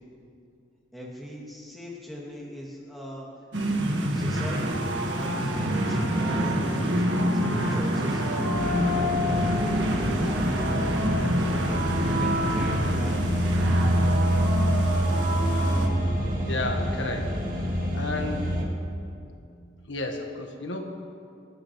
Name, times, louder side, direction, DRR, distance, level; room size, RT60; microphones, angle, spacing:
voice 1, 0.9-3.3 4.1-4.8 5.2-10.7 12.2-13.4, equal, ahead, -5 dB, 2.6 m, -40 dB
sound 1, 3.5-15.9, equal, 75° right, 1.7 m, -27 dB
sound 2, 8.5-18.6, equal, 45° right, 2.1 m, -26 dB
voice 2, 16.5-17.4 17.9-18.5 19.9-21.0, left 2 dB, 75° left, 3 dB, 1.5 m, -32 dB
29.0 x 10.0 x 3.2 m, 2.5 s
head